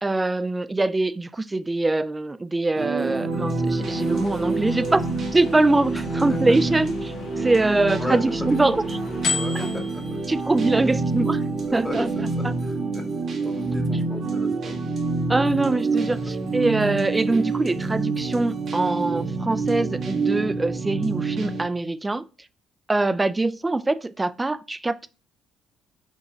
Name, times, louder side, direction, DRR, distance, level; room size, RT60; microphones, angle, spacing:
voice 1, 0.0-5.0 5.3-8.8 9.5-9.7 10.3-11.4 11.7-12.1 12.4-12.6 15.3-22.2 22.9-25.1, right 2 dB, 20° right, 0.3 m, -23 dB
sound 1, 2.7-21.6, right 3 dB, 55° right, 0.9 m, -27 dB
sound 2, 3.8-12.7, left 4 dB, 60° left, 0.9 m, -36 dB
voice 2, 8.0-8.6 9.3-10.2 11.8-12.1 12.4-13.0 13.4-14.9, left 2 dB, 15° left, 0.9 m, -35 dB
4.9 x 2.9 x 2.3 m
hypercardioid pair, 55°, 0 cm